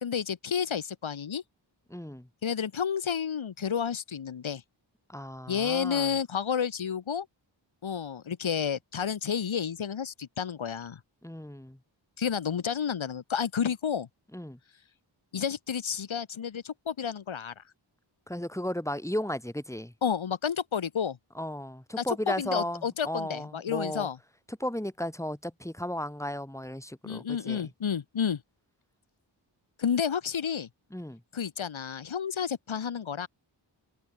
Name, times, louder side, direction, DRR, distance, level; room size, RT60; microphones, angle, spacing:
voice 1, 0.0-1.4 2.4-4.6 5.5-7.3 7.8-11.0 12.2-14.1 15.3-17.6 20.0-21.2 22.0-24.2 27.0-28.4 29.8-30.7 31.3-33.3, left 7 dB, 85° left, 1.4 m, -30 dB
voice 2, 1.9-2.3 5.1-6.1 11.2-11.8 14.3-14.6 18.3-19.9 21.3-24.1 24.5-27.7 30.9-31.2, left 1 dB, 5° left, 2.2 m, -35 dB
wide cardioid pair, 70°, 46 cm